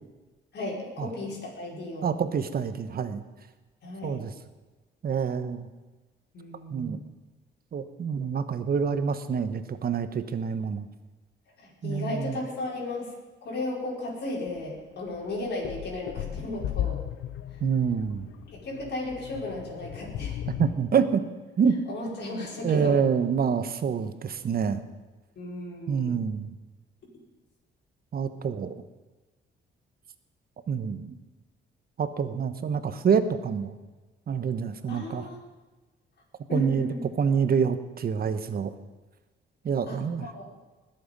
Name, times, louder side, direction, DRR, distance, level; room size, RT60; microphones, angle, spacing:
voice 1, 0.5-2.1 3.8-4.2 6.3-7.1 11.6-13.1 13.4-17.0 18.5-20.4 21.9-23.0 25.4-26.2 34.9-35.4 36.5-37.0 39.9-40.4, left 2 dB, 60° left, -3 dB, 5.2 m, -35 dB
voice 2, 2.0-3.2 4.0-4.3 5.0-5.7 6.7-7.0 7.7-10.9 11.8-12.4 17.6-18.3 20.5-21.2 21.6-21.8 22.6-24.8 25.9-26.5 28.1-28.7 30.7-31.2 32.0-33.7 34.3-35.3 36.5-38.7 39.6-40.3, right 6 dB, 50° right, 11 dB, 1.1 m, -27 dB
sound 1, 14.5-14.6 15.1-20.7, left 11 dB, 80° left, 0.8 m, -35 dB
20.5 x 7.8 x 5.4 m, 1.2 s
cardioid pair, 90°, 20 cm